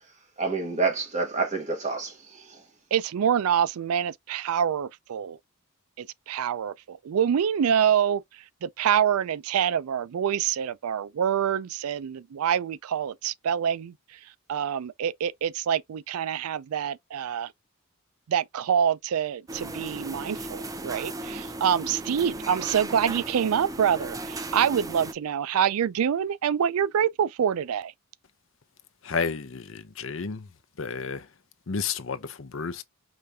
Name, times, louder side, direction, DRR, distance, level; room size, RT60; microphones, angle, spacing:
voice 1, 0.4-2.6, right 4 dB, 35° right, 1.8 m, -28 dB
voice 2, 2.9-5.4 6.0-8.2 8.6-13.9 14.5-17.5 18.3-27.9, right 8 dB, 90° right, 0.4 m, -26 dB
sound 1, 19.5-25.1, right 1 dB, 15° right, 0.4 m, -36 dB
voice 3, 29.0-30.5 30.8-31.3 31.7-32.8, left 5 dB, 60° left, 0.6 m, -31 dB
5.0 x 3.3 x 2.7 m
head